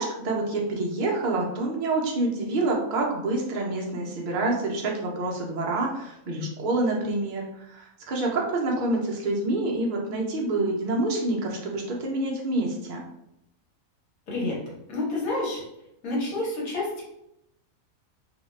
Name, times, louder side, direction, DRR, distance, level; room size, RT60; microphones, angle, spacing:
voice 1, 0.0-13.0, right 2 dB, 55° right, -2 dB, 0.5 m, -27 dB
voice 2, 14.9-15.6 16.0-17.0, left 2 dB, 75° left, -4 dB, 1.4 m, -28 dB
2.7 x 2.3 x 3.1 m, 0.82 s
omnidirectional pair, 1.5 m